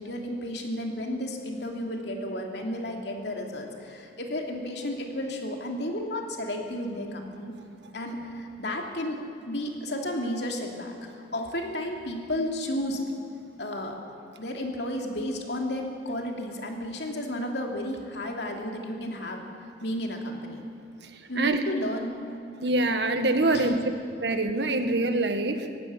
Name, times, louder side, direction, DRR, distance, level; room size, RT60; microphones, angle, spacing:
voice 1, 0.0-7.5 7.9-9.2 9.4-13.0 13.6-14.0 14.4-19.4 19.8-20.7 21.3-22.1 23.5-23.7, left 1 dB, 65° left, 2 dB, 2.9 m, -32 dB
voice 2, 22.6-23.8 24.2-25.7, right 2 dB, 65° right, 7 dB, 1.6 m, -25 dB
18.5 x 16.0 x 9.7 m, 2.4 s
head